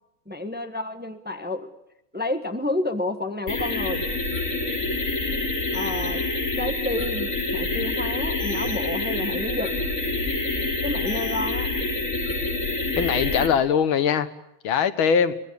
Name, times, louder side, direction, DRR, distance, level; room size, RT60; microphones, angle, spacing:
voice 1, 0.3-1.7 2.1-4.1 5.7-6.2 6.6-9.7 10.8-11.7, left 2 dB, 5° right, 7 dB, 1.3 m, -30 dB
sound 1, 3.5-13.5, left 2 dB, 40° left, 4.1 m, -27 dB
voice 2, 13.0-14.3 14.6-15.3, left 7 dB, 85° left, 12 dB, 2.0 m, -21 dB
25.0 x 20.5 x 8.3 m, 0.84 s
omnidirectional pair, 2.2 m